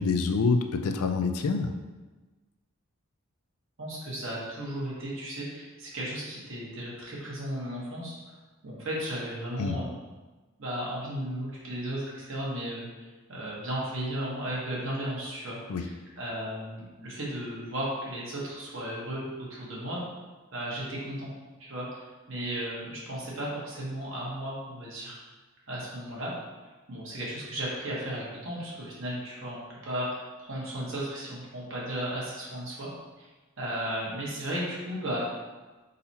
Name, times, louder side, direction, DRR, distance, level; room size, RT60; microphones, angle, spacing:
voice 1, 0.0-1.7 9.6-9.8 15.7-15.8, left 4 dB, 85° left, 6 dB, 0.4 m, -26 dB
voice 2, 3.8-8.2 8.6-9.9 10.6-20.0 20.5-21.3 21.6-25.2 25.7-26.3 26.9-32.9 33.2-33.3 33.6-35.4, right 1 dB, 60° right, -5 dB, 1.3 m, -35 dB
4.2 x 3.9 x 2.8 m, 1.2 s
head